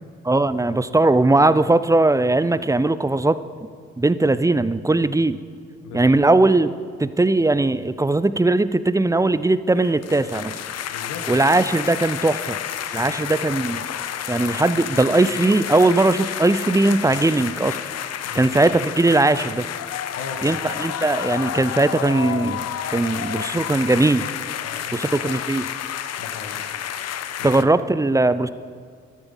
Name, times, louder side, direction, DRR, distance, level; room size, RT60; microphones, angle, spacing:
voice 1, 0.3-3.4 4.0-5.4 5.9-10.5 11.3-12.6 12.9-13.8 14.3-17.8 18.3-19.7 20.4-24.3 24.9-25.7 27.4-28.5, right 2 dB, 10° right, 15 dB, 0.5 m, -19 dB
sound 1, 9.8-27.6, left 10 dB, 50° left, 0.7 m, -30 dB
voice 2, 10.9-11.3 12.9-13.2 18.2-18.5 20.1-20.6 24.6-25.0 26.2-26.7 27.4-27.5, left 5 dB, 65° left, 5 dB, 1.4 m, -37 dB
13.0 x 10.5 x 5.5 m, 2.1 s
hypercardioid pair, 45°, 32 cm